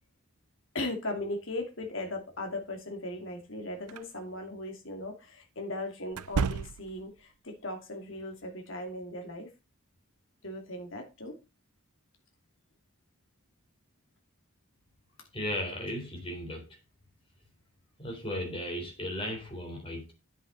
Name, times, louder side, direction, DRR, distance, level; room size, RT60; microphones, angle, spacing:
voice 1, 0.7-9.5 10.4-11.4, left 1 dB, 55° left, 2.4 m, -38 dB
sound 1, 3.9-4.1 6.1-7.1, right 5 dB, 85° right, 0.5 m, -32 dB
voice 2, 15.3-16.8 18.0-20.1, left 1 dB, 25° left, 3.6 m, -36 dB
10.5 x 7.6 x 3.9 m
head